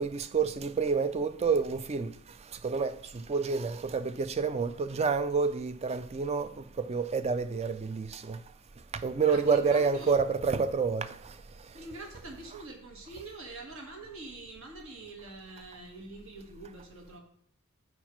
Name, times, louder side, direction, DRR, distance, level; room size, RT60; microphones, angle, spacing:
voice 1, 0.0-2.1 2.6-6.5 6.8-8.4 9.0-11.1, right 5 dB, 30° right, 0.3 m, -28 dB
voice 2, 9.2-10.1 11.7-17.2, right 2 dB, 60° right, 1.5 m, -45 dB
4.9 x 4.5 x 5.8 m
head